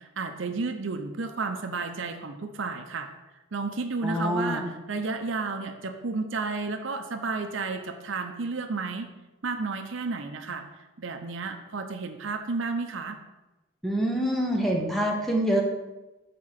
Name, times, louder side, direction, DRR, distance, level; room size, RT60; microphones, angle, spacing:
voice 1, 0.0-3.1 3.5-9.1 9.4-13.2, right 4 dB, 70° right, 6 dB, 0.6 m, -32 dB
voice 2, 4.0-4.7 13.8-15.6, equal, ahead, 0 dB, 0.9 m, -26 dB
6.8 x 3.7 x 5.8 m, 1.0 s
head